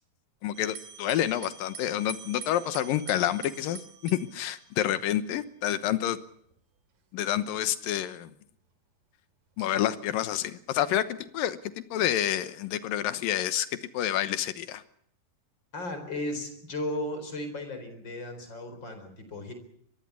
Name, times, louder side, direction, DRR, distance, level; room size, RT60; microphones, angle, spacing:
voice 1, 0.4-6.2 7.1-8.3 9.6-14.8, left 12 dB, 85° left, 13 dB, 2.8 m, -28 dB
sound 1, 0.5-5.3 6.1-6.6 7.3-7.4 9.6-10.1, right 7 dB, 65° right, 4.1 m, -46 dB
voice 2, 15.7-19.5, left 1 dB, 30° left, 8 dB, 4.7 m, -35 dB
23.0 x 17.0 x 8.4 m, 0.68 s
omnidirectional pair, 4.0 m